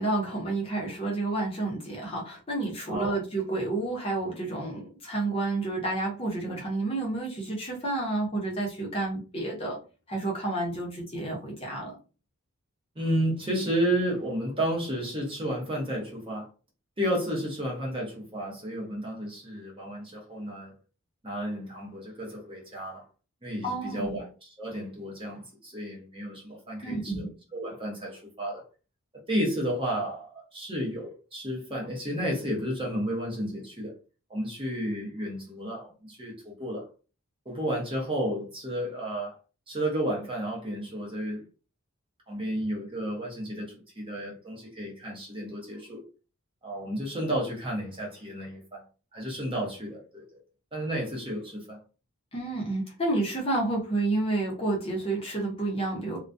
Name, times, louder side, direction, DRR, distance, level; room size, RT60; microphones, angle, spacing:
voice 1, 0.0-9.8 10.1-12.0 23.6-24.2 26.8-27.3 52.3-56.2, right 2 dB, 25° left, 0.7 m, -30 dB
voice 2, 13.0-16.5 17.0-20.7 21.2-23.0 23.4-28.6 29.3-33.9 34.3-36.8 37.5-39.3 39.7-41.4 42.3-46.0 46.6-48.8 49.1-50.4 50.7-51.8, equal, 25° right, 0.7 m, -32 dB
2.3 x 2.1 x 2.5 m
head